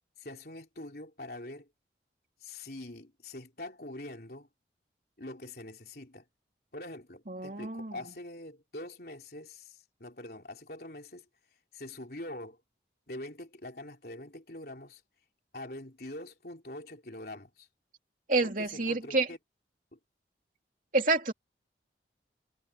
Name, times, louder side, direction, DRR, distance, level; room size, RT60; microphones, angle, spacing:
voice 1, 0.2-1.7 2.4-4.5 5.2-6.2 6.7-11.3 11.7-12.6 13.1-15.0 15.5-17.7 18.4-19.4 19.9-20.0, left 1 dB, 55° left, 3.8 m, -44 dB
voice 2, 7.3-8.0 18.3-19.3 20.9-21.3, right 3 dB, 45° right, 3.0 m, -28 dB
head